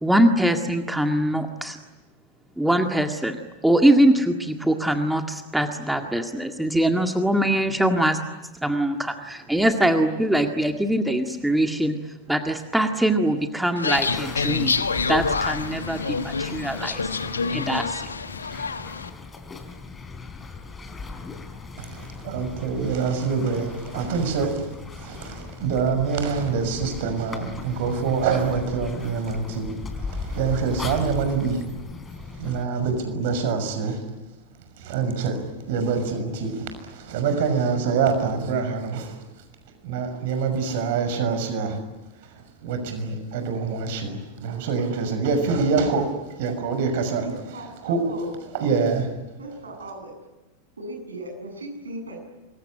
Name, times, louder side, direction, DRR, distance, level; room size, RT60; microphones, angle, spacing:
voice 1, 0.0-1.8 2.6-8.2 8.6-12.0 12.3-17.0 17.5-18.0, right 1 dB, 5° right, 5 dB, 1.9 m, -22 dB
sound 1, 13.8-19.1, left 5 dB, 75° left, 1.2 m, -27 dB
sound 2, 13.9-32.6, left 4 dB, 15° left, 3.7 m, -38 dB
voice 2, 21.8-24.7 24.9-29.7 30.1-31.6 32.4-34.0 34.8-39.2 39.8-41.8 42.6-46.1 46.4-47.2 47.8-48.0 48.5-49.1, right 5 dB, 50° right, 7 dB, 6.1 m, -25 dB
voice 3, 47.2-48.4 49.4-50.2 50.8-52.2, right 2 dB, 75° right, 4 dB, 7.6 m, -37 dB
26.0 x 22.0 x 10.0 m, 1.0 s
figure-of-eight pair, 90°, 0 cm